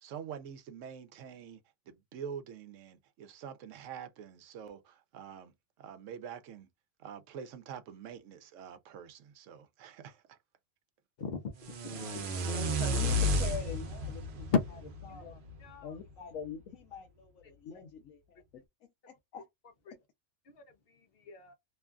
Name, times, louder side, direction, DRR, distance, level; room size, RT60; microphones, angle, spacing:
voice 1, 0.0-1.6 1.9-5.5 5.8-6.7 7.0-10.4, right 8 dB, 75° right, 0.9 m, -46 dB
voice 2, 11.2-12.8 14.5-14.6 15.1-15.3 15.6-16.0 19.9-20.0 20.5-21.5, left 5 dB, 55° left, 0.8 m, -36 dB
sound 1, 11.6-15.7, left 1 dB, 50° right, 0.7 m, -32 dB
voice 3, 12.5-14.5 15.1-15.4 15.8-18.4 19.1-19.5 19.9-20.0, left 7 dB, 90° left, 1.1 m, -44 dB
3.0 x 2.3 x 2.3 m
omnidirectional pair, 1.3 m